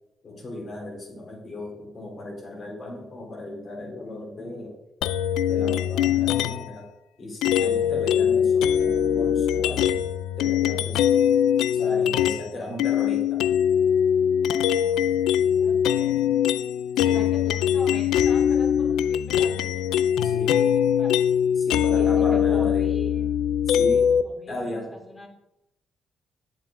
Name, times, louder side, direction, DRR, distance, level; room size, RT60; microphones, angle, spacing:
voice 1, 0.2-4.8 5.5-6.9 7.2-10.0 10.4-11.3 11.7-13.5 17.0-17.2 20.2-20.6 21.6-22.9 23.7-24.0 24.5-24.9, left 1 dB, 50° left, 0 dB, 3.5 m, -35 dB
sound 1, 5.0-6.7 7.4-12.5 12.8-24.2, left 9 dB, 90° left, 0.3 m, -22 dB
voice 2, 7.5-8.0 12.5-12.9 14.5-15.2 15.5-16.4 17.0-19.9 20.1-21.2 21.8-23.3 23.7-25.3, equal, 20° left, 1 dB, 2.8 m, -42 dB
9.1 x 7.7 x 3.7 m, 0.88 s
supercardioid pair, 60°, 0 cm